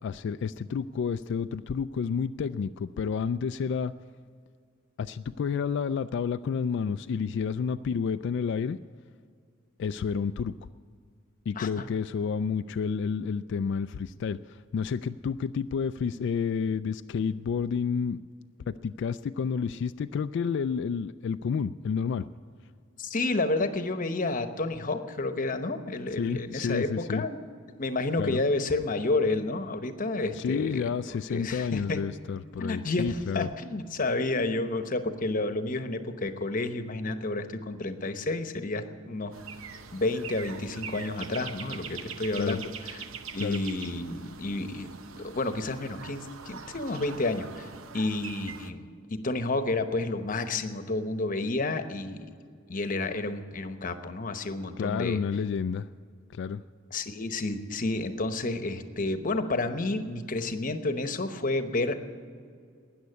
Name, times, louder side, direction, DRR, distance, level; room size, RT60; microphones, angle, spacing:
voice 1, 0.0-3.9 5.0-8.8 9.8-10.5 11.5-18.2 18.7-22.2 26.2-27.3 28.2-28.4 30.3-33.5 42.4-42.6 43.4-43.6 54.8-55.9 56.3-56.6, left 6 dB, 60° left, 11 dB, 0.3 m, -30 dB
voice 2, 23.0-27.4 27.8-30.9 31.3-32.0 32.6-39.3 39.9-43.0 43.3-44.9 45.2-47.7 47.9-52.3 52.7-55.2 56.9-62.0, left 2 dB, 40° left, 9 dB, 0.9 m, -30 dB
sound 1, 39.3-48.7, right 6 dB, 80° right, 0.8 m, -43 dB
13.5 x 9.5 x 9.5 m, 2.2 s
head